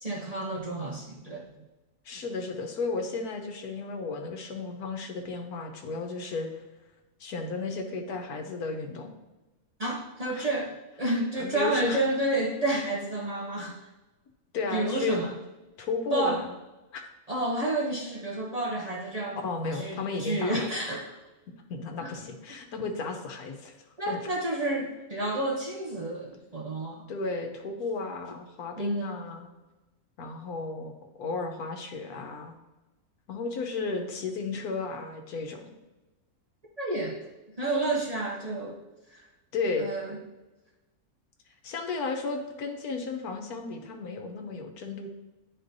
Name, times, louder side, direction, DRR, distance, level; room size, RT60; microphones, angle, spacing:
voice 1, 0.0-1.4 9.8-13.8 14.7-15.3 16.1-16.4 17.3-19.4 19.7-21.2 22.0-22.1 24.0-27.0 28.8-29.2 36.8-37.2 37.6-38.8 39.1-39.2 39.8-40.2, right 2 dB, 35° right, -3 dB, 0.6 m, -30 dB
voice 2, 2.0-6.5 7.2-9.1 10.3-10.5 11.4-12.0 14.5-15.2 15.8-16.5 16.9-17.0 19.4-20.7 21.7-23.7 24.1-24.2 27.1-29.5 30.2-30.9 31.2-32.5 33.3-35.7 39.5-39.9 41.6-45.1, left 4 dB, 85° left, 4 dB, 1.4 m, -33 dB
10.0 x 4.3 x 2.7 m, 1.1 s
omnidirectional pair, 1.6 m